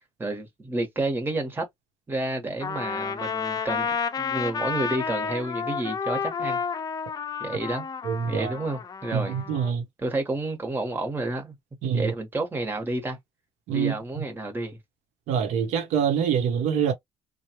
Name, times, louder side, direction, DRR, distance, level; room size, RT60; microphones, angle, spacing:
voice 1, 0.2-1.6 2.1-3.9 4.2-6.6 7.4-7.9 8.3-9.4 10.0-11.5 11.9-13.2 13.7-14.8, right 2 dB, 20° right, 1.3 m, -30 dB
Trumpet, 2.6-9.7, left 6 dB, 35° left, 0.6 m, -31 dB
voice 2, 8.0-8.5 9.1-9.8 11.8-12.1 13.7-14.3 15.3-16.9, right 7 dB, 80° right, 1.1 m, -25 dB
3.2 x 2.4 x 2.9 m
supercardioid pair, 85°, 12 cm